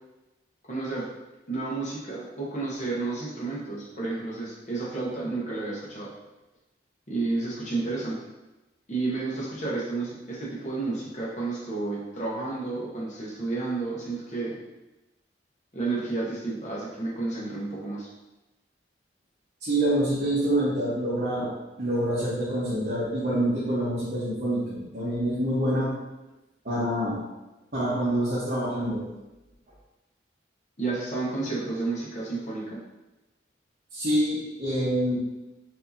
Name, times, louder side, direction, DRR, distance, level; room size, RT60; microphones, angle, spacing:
voice 1, 0.7-1.0 1.5-6.1 7.1-8.2 8.9-14.6 15.7-18.1 30.8-32.8, right 3 dB, 40° left, -5 dB, 0.9 m, -31 dB
voice 2, 19.6-21.5 21.8-25.9 26.6-27.2 27.7-29.0 33.9-35.2, right 1 dB, 50° right, -11 dB, 1.0 m, -26 dB
4.7 x 2.7 x 2.7 m, 1.0 s
head